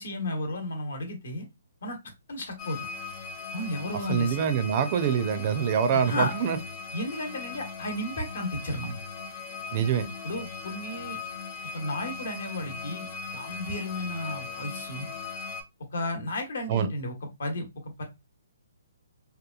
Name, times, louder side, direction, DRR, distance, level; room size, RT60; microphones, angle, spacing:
voice 1, 0.0-1.4 1.8-2.0 2.3-2.8 3.5-4.4 5.9-6.3 6.9-9.0 10.2-11.2 11.7-13.1 13.3-15.1 15.9-17.7 18.0-18.1, left 1 dB, 70° left, 1.0 m, -33 dB
sound 1, 2.6-15.6, left 4 dB, 30° left, 0.7 m, -39 dB
voice 2, 4.1-6.6 9.7-10.1 16.7-16.9, right 7 dB, 35° right, 0.4 m, -25 dB
2.9 x 2.2 x 2.3 m
hypercardioid pair, 155°, 0 cm